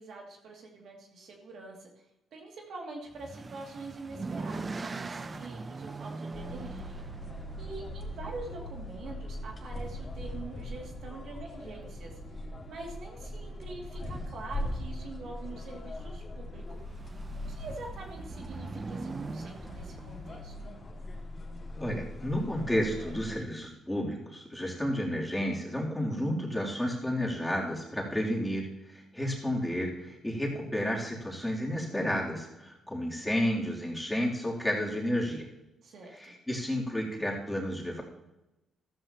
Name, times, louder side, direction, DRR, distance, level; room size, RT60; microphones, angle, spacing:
voice 1, 0.0-1.9 2.3-7.0 7.6-12.1 12.7-20.5 35.8-36.4, right 3 dB, 65° right, 0 dB, 2.5 m, -45 dB
sound 1, 3.1-9.3 10.3-10.7 11.0-11.1 11.5-11.6 16.6-21.0, right 3 dB, 30° right, 0.6 m, -42 dB
sound 2, 6.3-23.4, left 1 dB, 35° left, 2.1 m, -41 dB
voice 2, 21.8-35.4 36.2-38.0, equal, 5° left, -4 dB, 3.2 m, -31 dB
14.0 x 13.5 x 3.0 m, 0.97 s
cardioid pair, 90°, 0 cm